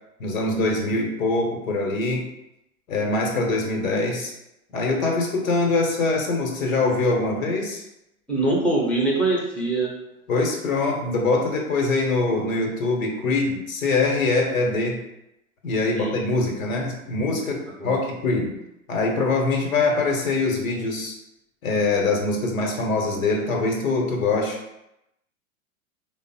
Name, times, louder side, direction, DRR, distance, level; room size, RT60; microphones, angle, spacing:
voice 1, 0.2-2.3 2.9-4.3 4.7-7.8 10.3-15.0 15.6-18.6 18.9-21.2 21.6-24.6, left 3 dB, 70° left, 1 dB, 1.0 m, -23 dB
voice 2, 8.3-9.9 15.9-16.2 17.8-18.0, right 2 dB, 5° left, -4 dB, 0.8 m, -23 dB
3.4 x 2.0 x 4.0 m, 0.87 s
figure-of-eight pair, 95°, 42 cm